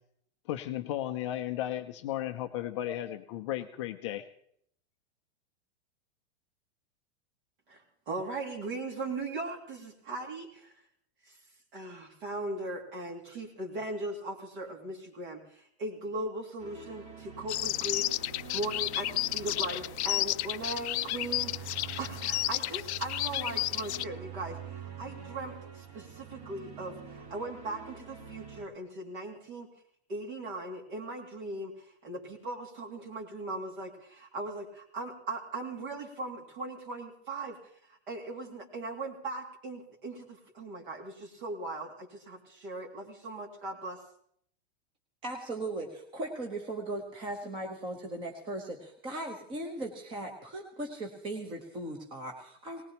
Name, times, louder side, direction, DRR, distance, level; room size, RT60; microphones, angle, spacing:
voice 1, 0.5-4.3, left 12 dB, 30° left, 7 dB, 0.5 m, -34 dB
voice 2, 7.7-10.7 11.2-11.4 11.7-18.1 18.5-29.7 30.1-37.6 37.9-44.0, right 2 dB, 50° right, 0 dB, 2.5 m, -39 dB
sound 1, 16.6-28.6, right 7 dB, 30° right, 1.6 m, -46 dB
sound 2, 17.5-24.0, left 16 dB, 85° left, 0.5 m, -32 dB
voice 3, 45.2-52.8, right 1 dB, 15° right, 2 dB, 1.0 m, -38 dB
19.0 x 18.5 x 2.9 m, 0.67 s
supercardioid pair, 170°, 33 cm